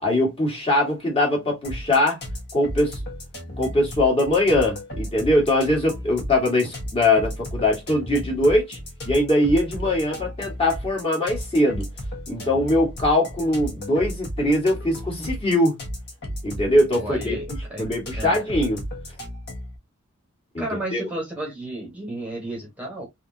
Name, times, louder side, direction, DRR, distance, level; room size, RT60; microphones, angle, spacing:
voice 1, 0.0-2.2 2.5-3.0 3.6-8.8 9.0-11.9 12.3-15.8 16.4-17.4 17.8-18.8 20.5-20.6 20.9-21.0, left 1 dB, 25° left, 1.5 m, -21 dB
sound 1, 1.6-19.8, equal, 50° left, 1.4 m, -34 dB
voice 2, 17.0-17.9 18.1-18.4 20.6-23.0, right 1 dB, 5° right, 1.0 m, -32 dB
3.6 x 2.9 x 2.6 m
head